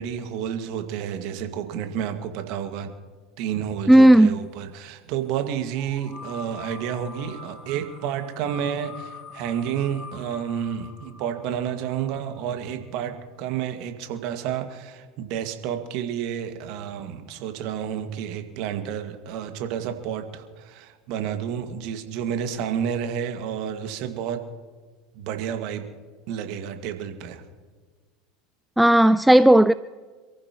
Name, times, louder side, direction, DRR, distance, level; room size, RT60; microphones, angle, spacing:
voice 1, 0.0-2.9 3.4-24.4 25.2-25.9 26.3-27.4, right 9 dB, 55° right, 2.0 m, -30 dB
voice 2, 3.9-4.4 28.8-29.7, right 1 dB, 5° right, 0.4 m, -14 dB
sound 1, 5.7-12.5, left 4 dB, 25° left, 6.6 m, -44 dB
27.5 x 14.5 x 3.0 m
figure-of-eight pair, 75°, 0 cm